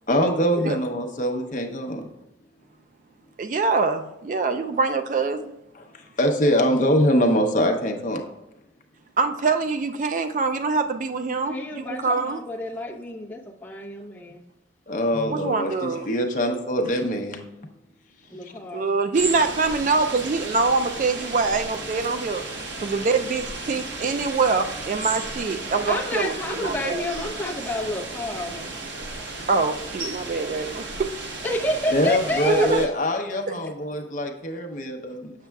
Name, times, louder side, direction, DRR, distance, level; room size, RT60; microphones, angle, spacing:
voice 1, 0.1-2.1 5.7-5.9 6.2-8.2 14.9-17.4 18.4-18.5 31.9-35.3, equal, 45° left, 3 dB, 0.7 m, -23 dB
voice 2, 3.4-5.5 9.2-11.6 12.0-12.4 15.3-16.1 18.7-22.4 22.8-26.4 26.6-27.0 29.5-31.1 32.4-32.8, right 4 dB, 45° right, 8 dB, 0.3 m, -24 dB
voice 3, 11.4-14.4 18.3-18.9 25.9-28.7 31.4-32.7, left 1 dB, 10° left, -3 dB, 0.7 m, -29 dB
sound 1, 19.1-32.9, right 3 dB, 85° right, 1.0 m, -34 dB
7.2 x 6.6 x 2.3 m, 0.93 s
head